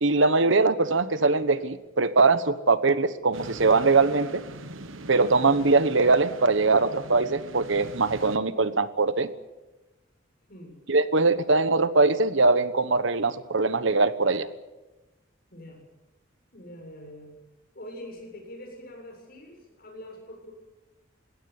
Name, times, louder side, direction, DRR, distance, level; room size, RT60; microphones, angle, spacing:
voice 1, 0.0-4.4 5.1-9.3 10.9-14.5, right 3 dB, 65° right, 13 dB, 1.1 m, -22 dB
sound 1, 3.3-8.4, right 2 dB, 85° right, 1.4 m, -42 dB
voice 2, 10.5-10.8 15.5-15.9 16.5-17.4 17.7-20.5, left 1 dB, 50° left, 2 dB, 7.6 m, -44 dB
21.0 x 17.0 x 9.6 m, 1.1 s
head